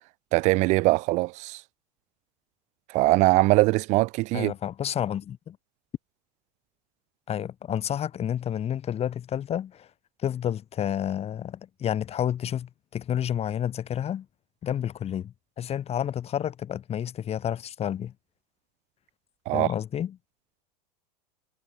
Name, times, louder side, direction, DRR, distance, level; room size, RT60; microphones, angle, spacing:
voice 1, 0.3-1.6 2.9-4.5 19.5-19.7, right 22 dB, 35° right, 0.5 m, -22 dB
voice 2, 4.3-5.6 7.3-9.9 10.2-14.3 14.6-18.1 19.5-20.2, left 10 dB, 30° left, 3.9 m, -30 dB
figure-of-eight pair, 80°, 21 cm